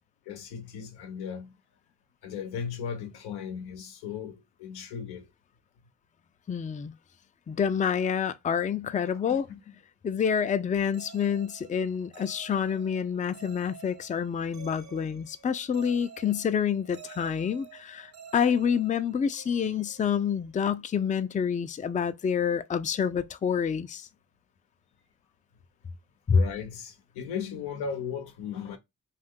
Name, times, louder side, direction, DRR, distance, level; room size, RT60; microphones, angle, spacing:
voice 1, 0.3-1.6 2.2-5.3 9.1-9.7 26.3-28.8, left 7 dB, 90° left, 0.6 m, -37 dB
voice 2, 6.5-6.9 7.5-9.5 10.0-24.1 26.3-26.4, left 7 dB, 20° left, 0.4 m, -27 dB
sound 1, 10.9-20.7, right 8 dB, 45° right, 0.6 m, -51 dB
2.5 x 2.4 x 3.6 m
supercardioid pair, 40°, 38 cm